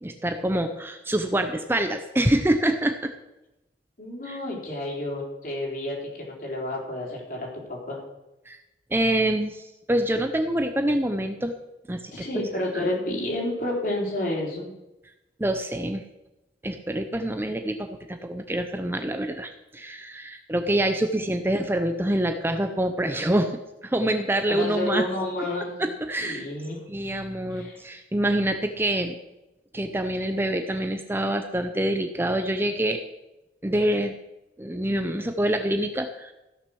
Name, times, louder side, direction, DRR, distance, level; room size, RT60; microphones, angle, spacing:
voice 1, 0.0-3.1 4.3-4.4 8.5-8.6 8.9-11.5 11.9-12.3 12.7-12.9 15.4-16.0 16.6-23.5 23.8-25.1 25.8-26.5 26.9-29.1 29.7-33.0 33.6-34.1 34.6-36.3, right 1 dB, 15° right, 7 dB, 0.6 m, -26 dB
voice 2, 4.0-8.0 12.1-14.7 21.1-21.3 24.5-25.8 26.2-26.8 27.5-27.8, left 1 dB, 50° left, -2 dB, 3.8 m, -30 dB
15.0 x 6.6 x 6.2 m, 0.97 s
head